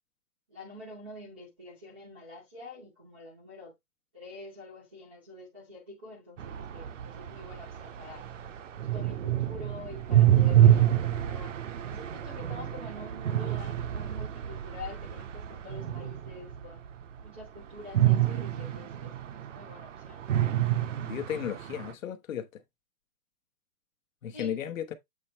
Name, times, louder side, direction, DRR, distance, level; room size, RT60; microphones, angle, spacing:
voice 1, 0.5-3.7 4.1-8.2 8.8-11.5 11.8-16.8 17.2-20.2 24.3-24.5, left 2 dB, 5° right, 0.6 m, -46 dB
sound 1, 6.4-16.6 17.9-19.8 20.2-21.9, right 12 dB, 50° right, 0.7 m, -26 dB
voice 2, 21.0-22.5 24.2-24.9, left 9 dB, 50° left, 1.1 m, -34 dB
7.7 x 3.1 x 4.2 m
hypercardioid pair, 175°, 50 cm